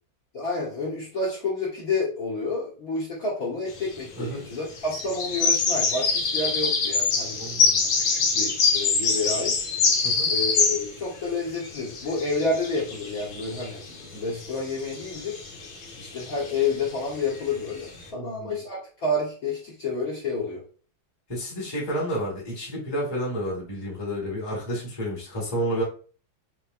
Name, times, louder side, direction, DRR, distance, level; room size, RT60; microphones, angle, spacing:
voice 1, 0.3-7.4 8.0-9.6 10.3-15.4 16.0-20.6, left 3 dB, 50° left, -6 dB, 1.5 m, -29 dB
sound 1, 3.7-4.1 4.8-11.0 11.3-18.1, left 4 dB, 90° left, 1.8 m, -25 dB
voice 2, 7.3-7.9 10.0-10.3 18.1-18.5 21.3-25.8, equal, 15° left, -4 dB, 1.3 m, -30 dB
4.6 x 3.4 x 2.5 m, 0.39 s
omnidirectional pair, 2.2 m